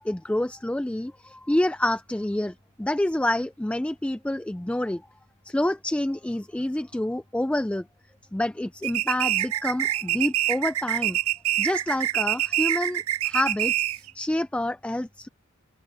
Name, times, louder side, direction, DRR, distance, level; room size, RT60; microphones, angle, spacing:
voice 1, 0.0-5.0 5.5-7.9 8.3-11.2 11.6-15.3, left 1 dB, 5° left, 0.3 m, -28 dB
sound 1, 8.8-14.1, right 13 dB, 70° right, 0.5 m, -25 dB
head